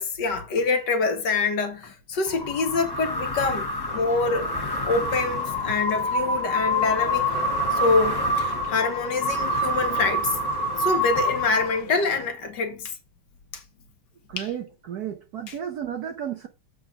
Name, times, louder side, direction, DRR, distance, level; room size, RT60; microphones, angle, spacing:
voice 1, 0.0-4.5 4.8-7.3 7.7-10.4 10.8-12.9 13.5-13.6 14.4-14.5, left 4 dB, 60° left, 1.7 m, -25 dB
sound 1, 2.3-12.0, left 1 dB, 15° left, 1.0 m, -27 dB
sound 2, 3.9-12.3, left 3 dB, 35° left, 0.7 m, -40 dB
voice 2, 14.3-16.5, right 9 dB, 60° right, 1.1 m, -33 dB
7.9 x 3.9 x 5.2 m
omnidirectional pair, 2.3 m